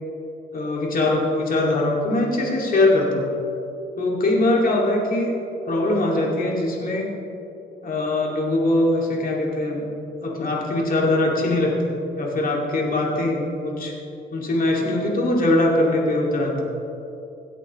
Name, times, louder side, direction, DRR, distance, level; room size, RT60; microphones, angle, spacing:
voice 1, 0.5-3.3 4.0-5.3 5.7-7.1 7.8-9.8 10.2-13.9 14.3-16.6, left 2 dB, 45° left, -2 dB, 2.4 m, -22 dB
16.5 x 8.5 x 3.2 m, 2.8 s
cardioid pair, 90°, 20 cm